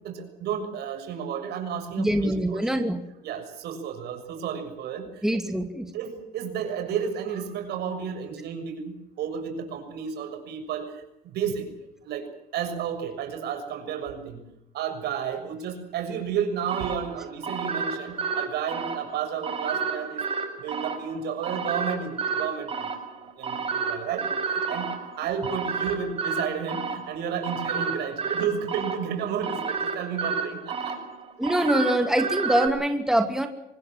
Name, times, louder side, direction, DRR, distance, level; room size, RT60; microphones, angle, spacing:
voice 1, 0.0-2.7 3.2-5.4 5.9-11.7 12.0-14.4 14.7-20.3 20.6-22.7 23.4-31.0, right 7 dB, 75° right, 6 dB, 6.7 m, -32 dB
voice 2, 2.0-3.0 5.2-5.9 31.4-33.5, right 1 dB, 5° right, 6 dB, 2.5 m, -24 dB
sound 1, 16.7-32.7, right 5 dB, 35° right, 7.2 m, -31 dB
25.0 x 20.5 x 7.5 m, 0.86 s
cardioid pair, 110°, 17 cm